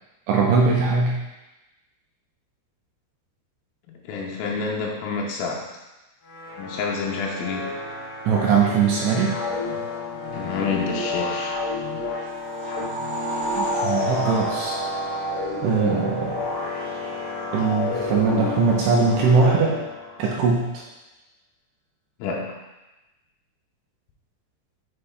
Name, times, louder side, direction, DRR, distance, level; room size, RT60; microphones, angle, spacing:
voice 1, 0.3-1.2 8.3-9.4 13.6-14.8 15.6-16.3 17.5-19.8 20.2-20.8, right 5 dB, 85° right, -3 dB, 2.6 m, -21 dB
voice 2, 3.9-5.7 6.6-7.8 10.3-11.6 15.8-16.0 22.2-22.6, left 5 dB, 80° left, -1 dB, 3.2 m, -28 dB
sound 1, 6.2-20.3, left 3 dB, 60° left, 2.6 m, -30 dB
sound 2, 12.2-15.8, right 2 dB, 65° right, 3.4 m, -31 dB
7.7 x 6.7 x 2.2 m, 1.0 s
omnidirectional pair, 6.0 m